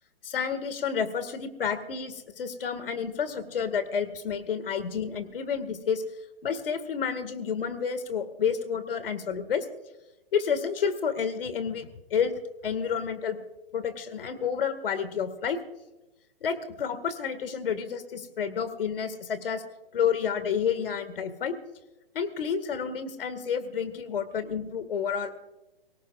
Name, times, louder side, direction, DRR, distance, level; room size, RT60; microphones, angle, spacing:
voice 1, 0.2-6.0 6.4-9.7 10.3-12.3 12.6-13.4 13.7-15.6 16.4-19.6 19.9-21.5 22.2-25.3, left 7 dB, 65° left, 11 dB, 2.0 m, -30 dB
24.5 x 18.0 x 2.5 m, 1.0 s
hypercardioid pair, 155°, 30 cm